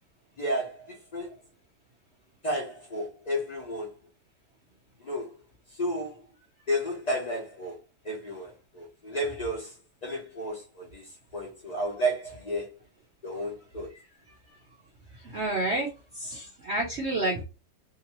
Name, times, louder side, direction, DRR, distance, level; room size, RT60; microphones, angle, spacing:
voice 1, 0.4-1.3 2.4-3.9 5.0-5.4 5.7-6.2 6.7-7.8 8.0-9.8 10.0-12.7 13.2-13.9, equal, 55° left, 0.4 m, -32 dB
voice 2, 15.1-17.4, right 2 dB, 65° right, 0.6 m, -30 dB
2.8 x 2.8 x 2.9 m
omnidirectional pair, 1.9 m